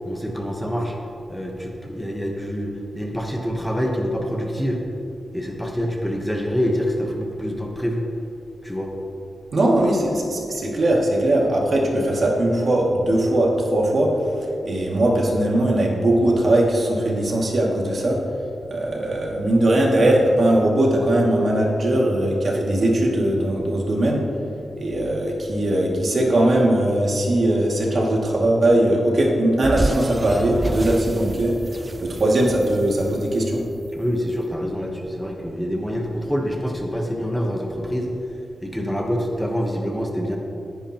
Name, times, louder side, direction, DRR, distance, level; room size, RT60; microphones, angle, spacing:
voice 1, 0.0-1.0 1.3-4.8 5.3-8.0 8.6-8.9 9.8-9.9 33.9-38.1 38.6-40.4, equal, ahead, 0 dB, 1.1 m, -26 dB
voice 2, 9.5-14.1 14.6-18.2 18.7-24.2 24.8-31.5 32.0-33.6, right 1 dB, 55° right, -2 dB, 2.2 m, -20 dB
sound 1, 29.6-34.0, right 2 dB, 25° right, 0.3 m, -29 dB
19.0 x 10.5 x 3.0 m, 2.9 s
wide cardioid pair, 135°, 0 cm